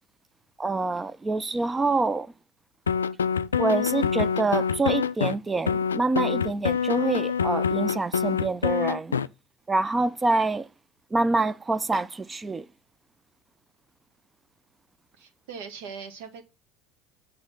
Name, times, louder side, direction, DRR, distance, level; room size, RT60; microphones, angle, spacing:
voice 1, 0.6-2.3 3.6-9.2 9.7-10.7 11.1-12.7, right 3 dB, 20° right, 0.5 m, -26 dB
sound 1, 2.9-5.3 5.7-9.3, left 7 dB, 85° left, 0.3 m, -25 dB
voice 2, 15.2-16.4, right 6 dB, 65° right, 1.5 m, -40 dB
8.0 x 3.8 x 5.7 m
figure-of-eight pair, 70°, 0 cm